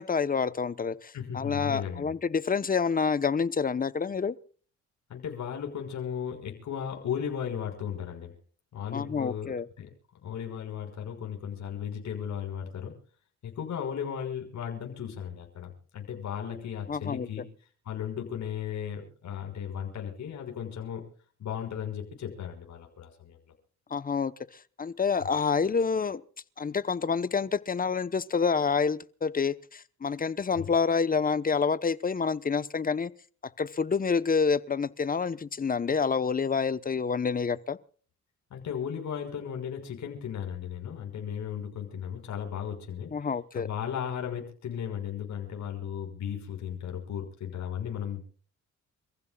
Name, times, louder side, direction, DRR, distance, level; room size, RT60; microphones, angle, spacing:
voice 1, 0.0-4.4 8.9-9.7 16.9-17.3 23.9-24.3 24.8-26.2 26.6-33.1 33.6-37.8 43.1-43.7, left 5 dB, 30° left, 1.0 m, -28 dB
voice 2, 1.1-2.1 5.1-8.3 8.7-9.9 10.2-12.9 13.4-17.4 17.9-21.0 21.4-23.4 30.6-30.7 38.5-43.1 43.5-48.3, left 8 dB, 65° left, 5.9 m, -36 dB
29.0 x 15.5 x 2.4 m
cardioid pair, 90°, 30 cm